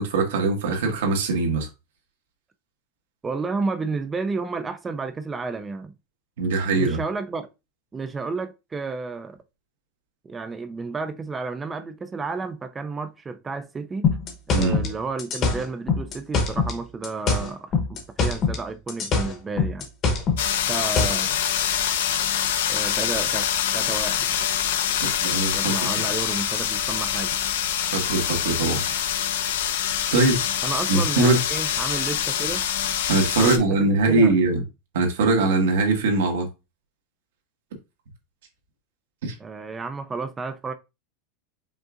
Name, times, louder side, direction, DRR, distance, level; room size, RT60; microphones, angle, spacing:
voice 1, 0.0-1.7 6.4-7.0 14.5-14.9 25.0-25.7 27.9-28.8 30.1-30.4 30.9-31.4 33.1-34.6 34.9-36.5 39.2-39.3, right 3 dB, 85° right, 1.6 m, -21 dB
voice 2, 3.2-5.9 6.7-7.5 7.9-9.4 10.2-14.1 14.5-19.9 20.7-21.4 22.7-23.5 23.7-24.5 25.5-27.4 30.6-32.6 33.4-34.3 39.4-40.7, right 4 dB, 10° right, 0.4 m, -31 dB
sound 1, 14.0-16.8 17.0-18.6 18.9-21.3, left 4 dB, 25° left, 0.9 m, -23 dB
sound 2, 20.4-33.6, left 9 dB, 80° left, 0.7 m, -25 dB
5.2 x 3.7 x 2.4 m
supercardioid pair, 170°, 0 cm